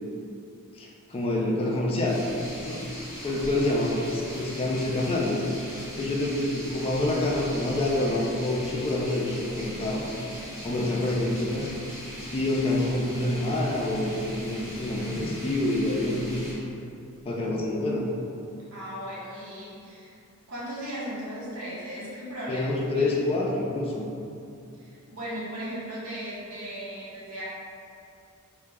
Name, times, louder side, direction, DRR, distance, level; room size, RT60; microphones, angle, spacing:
voice 1, 0.7-2.2 2.6-2.8 3.2-5.4 6.0-10.1 10.6-11.7 12.3-16.5 17.2-18.0 22.5-24.1, left 1 dB, 25° left, -2 dB, 0.3 m, -27 dB
sound 1, 2.0-16.5, equal, 15° right, 1.0 m, -40 dB
voice 2, 3.3-3.6 18.7-20.2 20.5-23.2 24.8-27.4, equal, 70° right, -8 dB, 1.1 m, -37 dB
3.8 x 2.3 x 3.4 m, 2.6 s
head